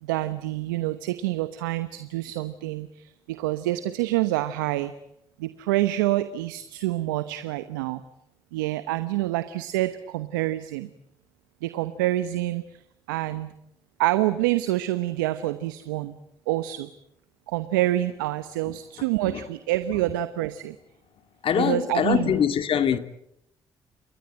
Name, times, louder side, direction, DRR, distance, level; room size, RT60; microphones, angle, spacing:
voice 1, 0.0-4.9 5.4-8.0 8.5-10.9 11.6-12.8 13.1-13.5 14.0-16.2 16.5-16.9 17.5-20.7 21.6-22.3, right 16 dB, 90° right, 1.0 m, -27 dB
voice 2, 21.4-23.0, left 8 dB, 60° left, 2.2 m, -23 dB
28.5 x 22.5 x 9.0 m
hypercardioid pair, 50°, 10 cm